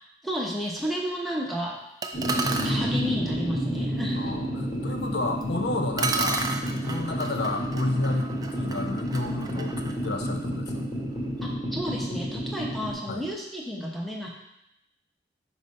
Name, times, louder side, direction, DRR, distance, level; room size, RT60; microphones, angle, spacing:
voice 1, 0.2-1.8 2.5-4.3 11.4-14.3, equal, ahead, -3 dB, 0.9 m, -31 dB
sound 1, 2.0-2.8 5.4-5.5 6.0-10.8, right 3 dB, 20° right, 0.4 m, -33 dB
sound 2, 2.1-12.9, equal, 40° left, 2.1 m, -30 dB
voice 2, 4.2-6.5 6.8-10.7 13.1-13.2, left 2 dB, 65° left, 5 dB, 0.5 m, -30 dB
4.8 x 4.0 x 5.4 m, 0.82 s
head